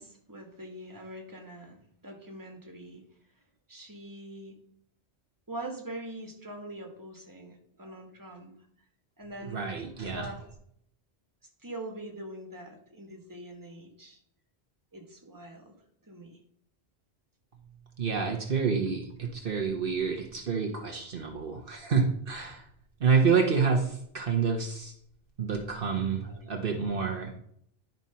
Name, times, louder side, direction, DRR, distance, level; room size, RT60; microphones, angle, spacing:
voice 1, 0.0-3.0 3.7-4.6 5.5-8.5 9.2-9.6 10.0-10.4 11.6-14.2 14.9-15.7 16.0-16.4 18.9-19.0 26.3-26.6, right 1 dB, 20° right, 2 dB, 1.6 m, -43 dB
voice 2, 9.5-10.2 18.0-22.6 23.0-24.9 25.4-27.3, right 5 dB, 60° right, 1 dB, 1.2 m, -28 dB
10.5 x 4.5 x 5.6 m, 0.69 s
omnidirectional pair, 1.0 m